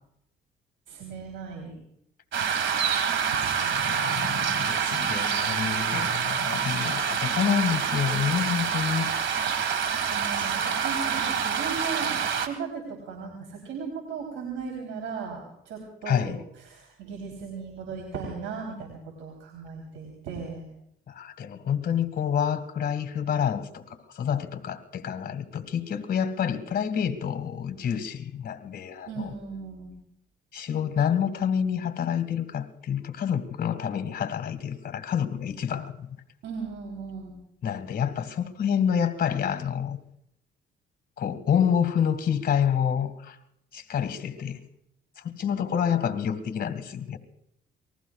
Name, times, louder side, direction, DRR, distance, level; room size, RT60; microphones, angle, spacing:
voice 1, 0.9-1.8 3.3-4.7 10.1-16.3 16.7-20.7 29.1-29.9 36.4-37.3, right 5 dB, 90° right, 3.7 m, -37 dB
sound 1, 2.3-12.5, right 7 dB, 70° right, 1.9 m, -27 dB
voice 2, 3.5-9.1 9.4-9.6 16.1-16.4 21.1-29.3 30.5-36.1 37.6-40.0 41.2-43.4 43.7-44.6 45.2-47.2, left 8 dB, 50° left, 1.9 m, -28 dB
28.5 x 20.0 x 2.4 m
cardioid pair, 90°, 20 cm